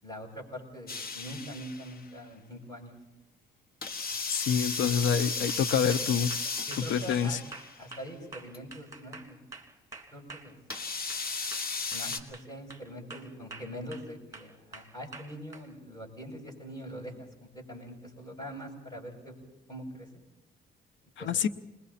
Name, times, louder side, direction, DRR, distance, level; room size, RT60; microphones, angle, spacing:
voice 1, 0.0-3.0 6.7-7.4 7.8-9.4 10.1-10.6 11.9-20.2 21.2-21.5, equal, 20° left, 0 dB, 7.3 m, -43 dB
sound 1, 0.9-2.0 3.8-7.8 8.5-8.6 10.7-12.2, left 4 dB, 50° left, 1.5 m, -35 dB
voice 2, 4.3-6.3 6.8-7.4 21.2-21.5, left 7 dB, 70° left, 14 dB, 0.9 m, -27 dB
sound 2, 5.5-11.2 11.5-12.8 13.1-14.1 14.3-15.6, right 3 dB, 15° right, 2.7 m, -46 dB
29.5 x 21.5 x 4.3 m, 0.99 s
cardioid pair, 90°, 20 cm